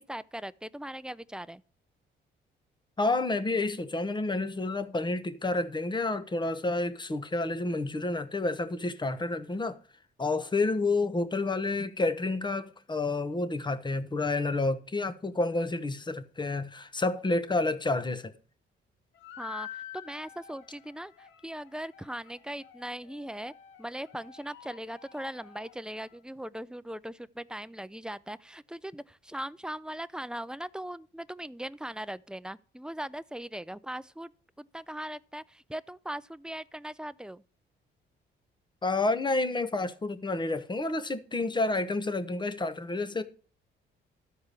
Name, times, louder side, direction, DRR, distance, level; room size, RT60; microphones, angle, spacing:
voice 1, 0.0-1.6 19.4-23.5 23.8-34.3 34.6-37.4, right 1 dB, 5° right, 0.4 m, -39 dB
voice 2, 3.0-9.8 10.2-18.3 38.8-43.2, left 2 dB, 25° left, 1.0 m, -29 dB
sound 1, 19.1-26.2, left 10 dB, 80° left, 1.0 m, -49 dB
13.0 x 4.7 x 6.8 m
cardioid pair, 90°, 20 cm